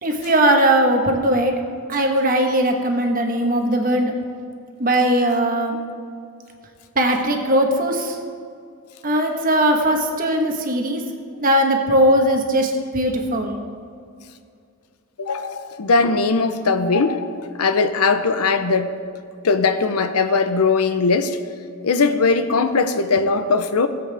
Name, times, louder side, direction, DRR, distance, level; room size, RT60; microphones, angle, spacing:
voice 1, 0.0-1.5 1.9-4.1 4.8-5.8 6.9-8.2 9.0-11.0 11.4-13.6, right 1 dB, 40° right, 3 dB, 1.2 m, -19 dB
voice 2, 15.2-18.9 19.4-21.4 21.8-23.9, left 4 dB, 85° left, 9 dB, 0.7 m, -19 dB
17.5 x 7.9 x 3.4 m, 2.3 s
head